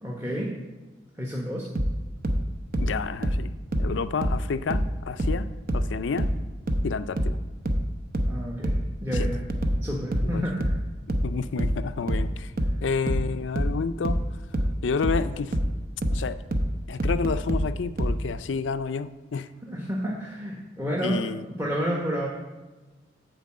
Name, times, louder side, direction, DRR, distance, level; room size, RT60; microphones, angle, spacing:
voice 1, 0.0-0.5 1.1-1.7 8.3-8.7 9.0-9.4 9.8-10.8 19.6-22.3, equal, 15° right, -4 dB, 1.0 m, -30 dB
sound 1, 1.8-4.9 5.2-18.2, equal, 50° right, 0.8 m, -26 dB
voice 2, 2.8-3.5 3.8-6.3 6.8-7.4 9.1-9.3 10.2-10.4 11.2-12.5 12.8-14.3 14.8-15.6 16.1-16.4 16.9-19.5 21.0-21.4, left 5 dB, 80° left, 13 dB, 0.4 m, -30 dB
9.0 x 4.6 x 7.4 m, 1.2 s
head